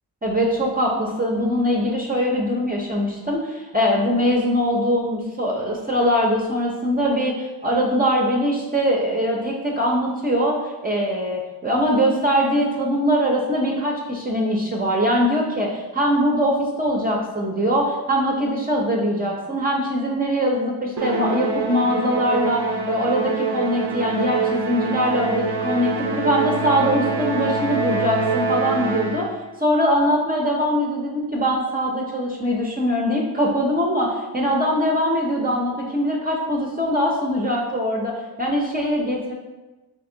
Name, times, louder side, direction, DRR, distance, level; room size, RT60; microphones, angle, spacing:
voice 1, 0.2-29.3 29.6-39.3, equal, 25° right, -2 dB, 0.6 m, -22 dB
Musical instrument, 21.0-29.5, right 4 dB, 85° right, 0.6 m, -25 dB
3.5 x 2.8 x 3.8 m, 1.1 s
cardioid pair, 85°, 39 cm